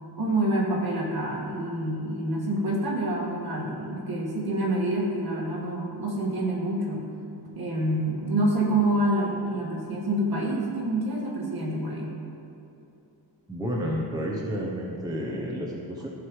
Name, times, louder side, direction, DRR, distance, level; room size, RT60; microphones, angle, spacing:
voice 1, 0.2-7.1 7.5-12.1, right 1 dB, 55° right, -3 dB, 1.9 m, -27 dB
voice 2, 13.5-16.1, equal, 10° right, -2 dB, 0.8 m, -30 dB
14.5 x 5.4 x 3.2 m, 2.8 s
wide cardioid pair, 145°, 44 cm